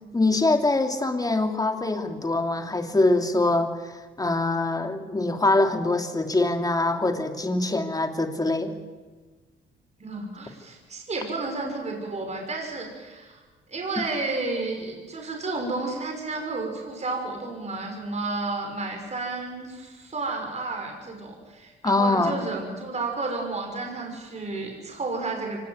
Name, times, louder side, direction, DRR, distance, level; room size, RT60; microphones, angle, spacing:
voice 1, 0.1-8.8 21.8-22.4, left 2 dB, 20° left, 5 dB, 2.8 m, -24 dB
voice 2, 10.0-13.4 13.7-25.7, right 3 dB, 35° right, 2 dB, 5.7 m, -32 dB
25.0 x 19.0 x 9.6 m, 1.3 s
cardioid pair, 90°, 20 cm